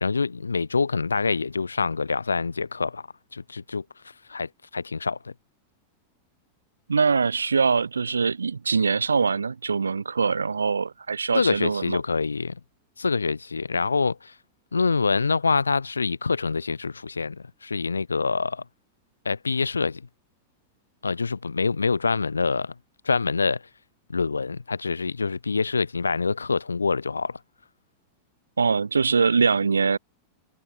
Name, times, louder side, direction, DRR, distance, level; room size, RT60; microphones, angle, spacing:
voice 1, 0.0-3.0 3.3-3.8 4.3-5.3 11.3-12.6 13.0-14.3 14.7-18.6 19.3-20.0 21.0-22.7 23.0-23.6 24.1-27.4, left 4 dB, 75° left, 2.1 m, -25 dB
voice 2, 6.9-12.0 28.6-30.0, right 5 dB, 75° right, 0.6 m, -23 dB
figure-of-eight pair, 90°, 0 cm